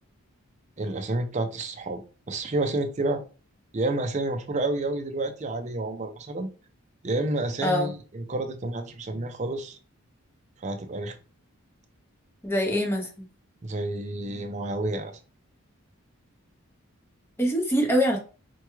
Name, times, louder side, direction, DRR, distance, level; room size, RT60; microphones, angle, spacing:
voice 1, 0.8-2.0 2.3-3.2 3.7-6.5 7.0-9.8 10.6-11.2 13.6-15.2, right 2 dB, 30° right, 6 dB, 0.5 m, -29 dB
voice 2, 12.4-13.1 17.4-18.2, equal, 10° left, 1 dB, 0.7 m, -24 dB
4.5 x 2.2 x 3.0 m, 0.36 s
head